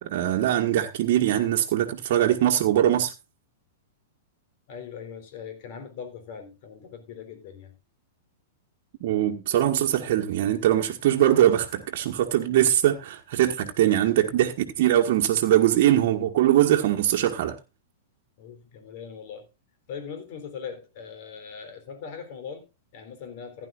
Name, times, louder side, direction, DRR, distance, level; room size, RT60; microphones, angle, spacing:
voice 1, 0.0-3.1 9.0-17.6, right 12 dB, 55° right, 1.5 m, -22 dB
voice 2, 4.7-7.7 13.6-14.0 18.4-19.5 19.9-23.7, left 6 dB, 55° left, 3.7 m, -40 dB
15.5 x 10.5 x 2.5 m
hypercardioid pair, 110°, 0 cm